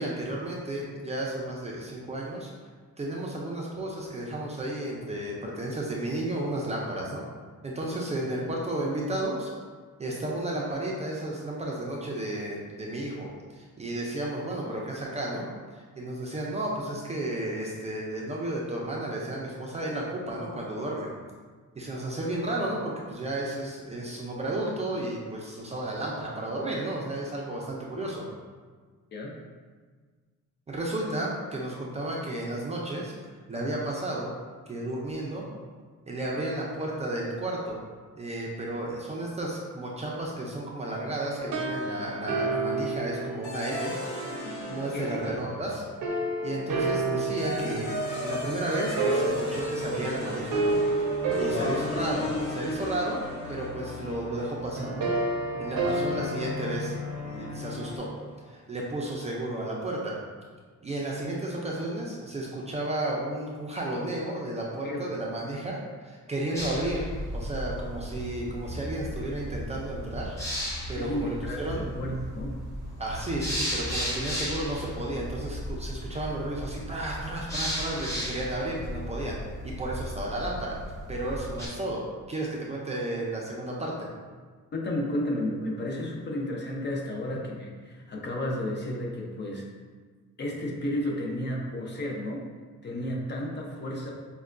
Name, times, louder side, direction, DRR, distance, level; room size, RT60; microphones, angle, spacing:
voice 1, 0.0-2.5 3.0-7.2 7.6-9.5 10.0-15.5 15.7-21.1 21.8-28.3 30.7-33.1 33.5-34.3 34.7-35.5 36.1-37.8 38.2-43.9 44.7-45.8 46.4-47.9 48.2-50.8 51.4-55.1 55.6-57.0 57.2-58.1 58.5-60.2 60.8-65.8 66.0-67.1 67.3-70.4 70.9-71.9 73.0-79.4 79.6-80.8 81.1-84.1, right 1 dB, 20° right, -3 dB, 0.4 m, -33 dB
sound 1, 41.4-44.7 46.0-58.0, right 2 dB, 75° right, 0.6 m, -31 dB
sound 2, 43.4-46.0 47.1-58.2, left 1 dB, 75° left, 0.9 m, -36 dB
voice 2, 44.8-45.4 51.5-51.9 55.9-56.0 64.8-65.0 71.0-72.5 84.7-89.7 90.4-92.5 92.8-94.1, left 1 dB, 35° left, -1 dB, 0.5 m, -32 dB
sound 3, 66.5-81.7, equal, 10° left, 0.9 m, -35 dB
5.4 x 2.2 x 2.4 m, 1.5 s
cardioid pair, 150°, 30 cm